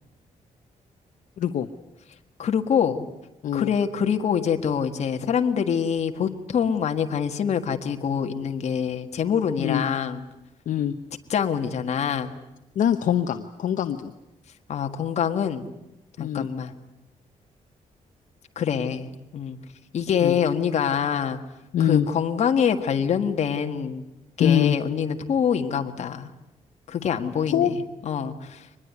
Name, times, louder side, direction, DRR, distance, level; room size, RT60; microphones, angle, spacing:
voice 1, 1.4-1.7 3.4-3.7 9.6-9.8 10.7-10.9 12.8-14.1 16.2-16.5 20.2-20.3 21.7-22.1 24.4-24.7 27.5-27.7, left 10 dB, 75° left, 7 dB, 1.0 m, -23 dB
voice 2, 2.4-3.0 3.5-10.2 11.3-12.3 14.7-15.6 16.2-16.7 18.5-19.1 19.3-19.6 19.9-21.4 21.8-24.0 24.4-26.3 26.9-27.7 28.0-28.6, left 7 dB, 55° left, 6 dB, 1.7 m, -25 dB
24.0 x 20.5 x 9.6 m, 0.93 s
wide cardioid pair, 165°, 14 cm